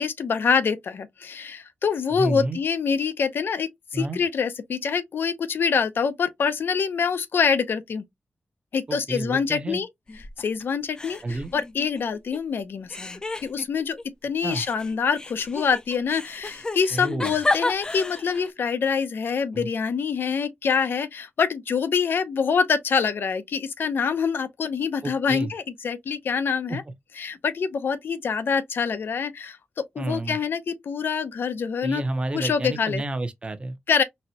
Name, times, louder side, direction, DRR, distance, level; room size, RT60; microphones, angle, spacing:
voice 1, 0.0-8.0 8.7-9.9 10.4-26.8 27.2-29.6 29.9-32.0 32.3-33.0 33.9-34.0, left 6 dB, 80° left, 0.5 m, -25 dB
voice 2, 2.1-2.6 3.9-4.2 8.9-9.8 11.2-11.5 14.4-14.6 16.9-17.3 19.5-19.7 25.0-25.5 26.7-26.8 30.0-30.4 31.8-33.8, right 2 dB, 30° right, 0.6 m, -30 dB
sound 1, 10.1-10.6 11.0-12.4 12.9-14.0 14.5-18.5, left 2 dB, 20° left, 0.4 m, -32 dB
4.1 x 2.1 x 2.7 m
wide cardioid pair, 125°, 4 cm